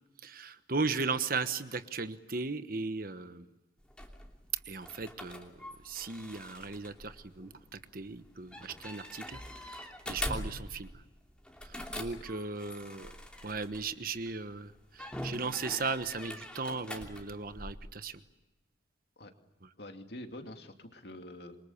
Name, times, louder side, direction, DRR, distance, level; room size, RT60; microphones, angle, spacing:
voice 1, 0.2-3.5 4.7-5.5 5.8-10.9 11.7-13.1 13.4-18.2, right 4 dB, 50° right, 11 dB, 1.2 m, -37 dB
sound 1, 3.8-14.3 14.9-17.7, left 1 dB, 5° left, 2.9 m, -43 dB
voice 2, 19.8-21.6, left 1 dB, 60° left, 5 dB, 2.5 m, -46 dB
27.0 x 24.0 x 7.2 m, 1.1 s
head